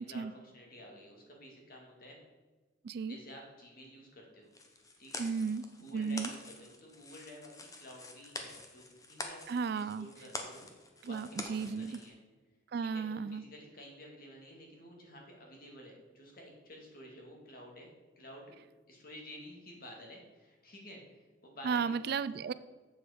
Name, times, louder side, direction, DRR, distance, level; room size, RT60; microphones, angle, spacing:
voice 1, 0.0-2.2 3.1-4.5 5.0-5.2 5.8-9.4 9.7-10.7 11.0-12.2 12.9-17.9 18.2-18.5 18.9-21.0 21.4-22.1, equal, 50° left, 0 dB, 2.2 m, -51 dB
voice 2, 2.8-3.2 5.2-5.7 5.9-6.3 9.5-10.1 11.0-12.0 12.7-13.4 21.6-22.5, right 5 dB, 55° right, 16 dB, 0.3 m, -34 dB
sound 1, 4.5-12.1, left 2 dB, 20° left, 0.9 m, -46 dB
7.8 x 7.0 x 5.1 m, 1.3 s
head